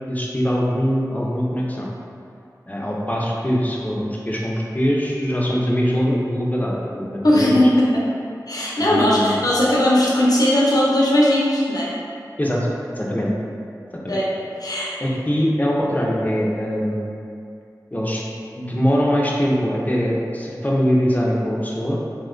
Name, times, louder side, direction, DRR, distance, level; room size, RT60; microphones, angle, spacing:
voice 1, 0.0-1.9 2.7-7.6 8.8-9.4 12.4-12.7 13.0-13.3 13.9-14.2 15.0-17.0 17.9-18.2 18.5-22.0, equal, 20° left, -3 dB, 0.5 m, -22 dB
voice 2, 7.2-7.9 8.5-11.9 14.1-14.2 14.6-14.9, left 1 dB, 60° left, -6 dB, 0.7 m, -18 dB
2.9 x 2.3 x 3.7 m, 2.5 s
wide cardioid pair, 50°, 7 cm